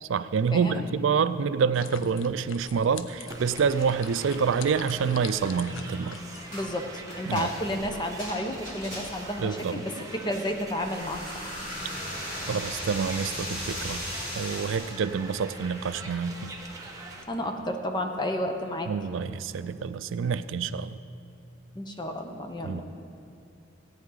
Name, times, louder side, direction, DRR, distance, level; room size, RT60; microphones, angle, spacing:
voice 1, 0.0-6.2 7.3-7.5 9.4-9.9 12.5-14.0 14.3-16.5 18.9-21.0 22.6-22.8, right 6 dB, 70° right, 13 dB, 0.4 m, -27 dB
voice 2, 0.5-0.8 6.5-11.5 17.3-18.9 21.7-22.8, left 1 dB, 25° left, 4 dB, 0.8 m, -31 dB
sound 1, 1.7-6.8, left 7 dB, 75° left, 0.5 m, -45 dB
sound 2, 3.3-17.2, right 2 dB, 20° right, 1.1 m, -43 dB
sound 3, 6.5-6.7 7.1-9.4 10.7-15.0, equal, 45° left, 3.1 m, -37 dB
17.0 x 8.7 x 3.9 m, 2.6 s
head